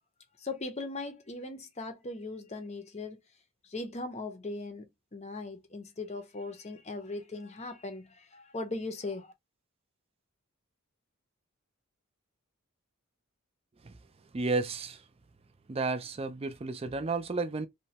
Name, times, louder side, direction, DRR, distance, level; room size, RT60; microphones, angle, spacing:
voice 1, 0.4-3.2 3.6-9.3, left 2 dB, 30° left, 0.6 m, -39 dB
voice 2, 14.3-15.0 15.7-17.7, right 3 dB, 25° right, 0.4 m, -32 dB
3.1 x 2.2 x 2.7 m
head